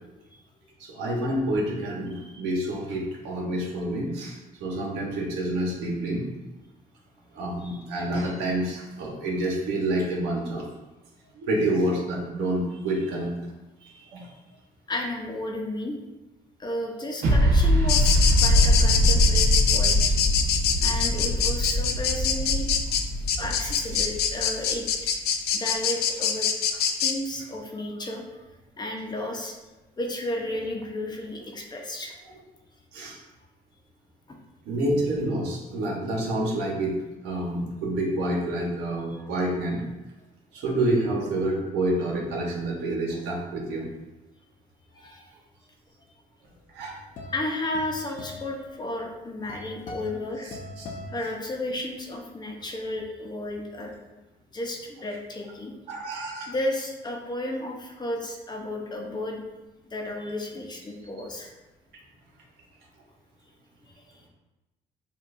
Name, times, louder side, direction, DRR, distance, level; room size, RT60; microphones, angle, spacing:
voice 1, 0.8-6.3 7.3-10.6 11.3-13.3 13.8-14.3 23.9-24.0 32.9-33.2 34.6-39.8 40.5-43.9 46.7-46.9 50.8-50.9 55.9-56.5, right 1 dB, 85° right, -2 dB, 1.3 m, -28 dB
voice 2, 14.9-16.0 16.6-20.2 20.8-22.7 23.4-24.9 25.5-26.5 27.0-28.2 28.8-29.5 30.0-32.1 44.9-45.3 47.3-50.5 51.1-53.9 54.5-55.7 56.5-59.4 59.9-61.5, left 1 dB, 25° left, 0 dB, 0.9 m, -33 dB
sound 1, 17.2-24.7, equal, 70° right, 1.1 m, -22 dB
sound 2, 17.9-27.1, left 7 dB, 70° left, 0.5 m, -24 dB
sound 3, 46.6-52.0, left 2 dB, 50° left, 0.9 m, -42 dB
7.3 x 2.6 x 2.6 m, 1.0 s
cardioid pair, 110°, 17 cm